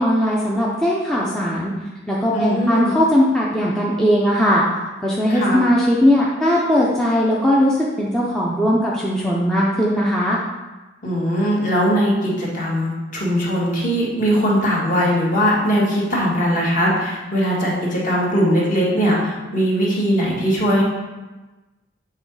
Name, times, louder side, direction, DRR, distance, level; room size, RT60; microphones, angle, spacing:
voice 1, 0.0-1.7 2.1-4.6 5.0-10.4, equal, 5° left, -5 dB, 0.6 m, -19 dB
voice 2, 2.3-2.9 5.3-5.6 11.0-20.8, equal, 40° left, -5 dB, 1.8 m, -20 dB
7.7 x 3.7 x 4.7 m, 1.2 s
head